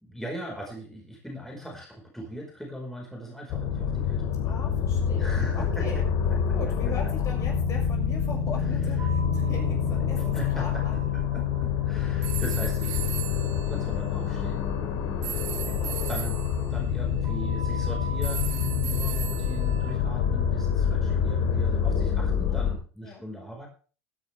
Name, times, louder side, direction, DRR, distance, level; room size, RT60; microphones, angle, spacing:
voice 1, 0.0-4.3 5.2-5.9 10.2-10.8 11.1-11.4 11.9-14.6 16.1-23.7, equal, 5° left, -1 dB, 4.8 m, -39 dB
sound 1, 3.5-22.8, left 7 dB, 65° left, 2.8 m, -27 dB
voice 2, 4.4-6.1 6.5-11.7 15.6-16.0 22.5-22.7 23.0-23.2, left 4 dB, 40° left, 1 dB, 6.4 m, -40 dB
sound 2, 9.0-14.3 17.2-22.0, right 3 dB, 55° right, 4.1 m, -45 dB
sound 3, 12.2-14.5 15.2-16.6 18.2-19.9, right 12 dB, 85° right, 2.1 m, -37 dB
16.5 x 10.5 x 3.5 m, 0.38 s
supercardioid pair, 105°, 8 cm